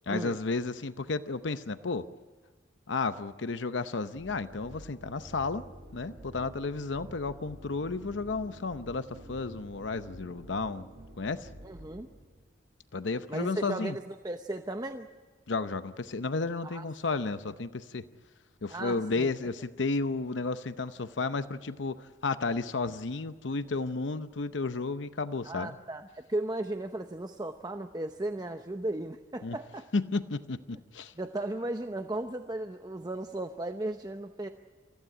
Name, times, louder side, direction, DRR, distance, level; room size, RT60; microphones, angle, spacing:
voice 1, 0.1-2.0 2.9-5.6 5.9-10.9 11.2-11.5 12.9-14.0 15.5-18.0 18.6-25.7 29.4-29.6 29.9-31.1, left 3 dB, 75° left, 12 dB, 0.7 m, -32 dB
sound 1, 4.2-12.5, right 1 dB, 70° right, 5.2 m, -49 dB
voice 2, 11.6-12.1 13.3-15.1 16.6-16.8 18.7-19.3 25.4-29.9 31.2-34.5, right 1 dB, 20° right, 7 dB, 0.8 m, -36 dB
28.0 x 15.0 x 9.9 m, 1.4 s
head